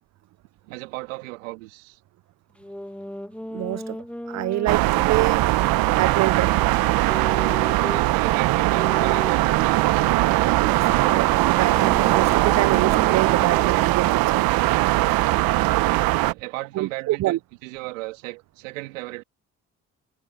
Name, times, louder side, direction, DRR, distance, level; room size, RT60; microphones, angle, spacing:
voice 1, 0.7-2.0 7.6-10.1 15.9-19.2, right 22 dB, 85° right, 3.2 m, -36 dB
sound 1, 2.6-8.1 8.7-13.9, left 1 dB, 5° left, 2.1 m, -37 dB
voice 2, 3.5-4.0 4.3-5.4 6.0-6.6 10.6-14.4 16.8-17.4, right 16 dB, 45° right, 0.5 m, -26 dB
sound 2, 4.7-16.3, right 18 dB, 65° right, 1.1 m, -20 dB
hypercardioid pair, 50°, 38 cm